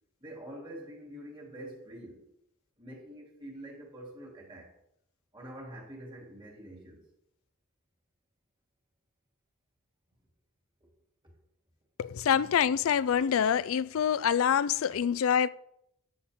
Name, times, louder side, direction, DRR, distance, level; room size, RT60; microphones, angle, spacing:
voice 1, 0.2-2.3 2.8-4.7 5.3-7.1, right 1 dB, 20° right, 2.9 m, -46 dB
voice 2, 12.0-15.5, left 8 dB, 75° left, 0.3 m, -26 dB
13.5 x 8.7 x 3.6 m
head